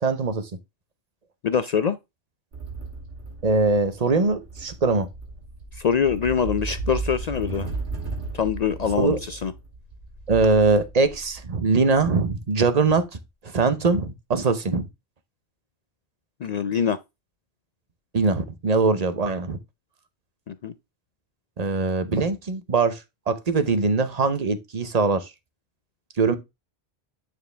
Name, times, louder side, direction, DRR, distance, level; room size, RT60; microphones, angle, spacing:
voice 1, 0.0-0.5 3.4-5.1 8.9-9.2 10.3-13.1 13.4-14.9 18.1-19.6 21.6-23.0 23.3-25.3 26.2-26.4, right 4 dB, 40° right, 0.8 m, -22 dB
voice 2, 1.4-2.0 5.7-7.7 8.3-9.5 16.4-17.0 20.5-20.7, left 7 dB, 60° left, 0.4 m, -24 dB
sound 1, 2.5-12.7, right 3 dB, 85° right, 2.3 m, -35 dB
9.3 x 4.7 x 3.3 m
omnidirectional pair, 1.1 m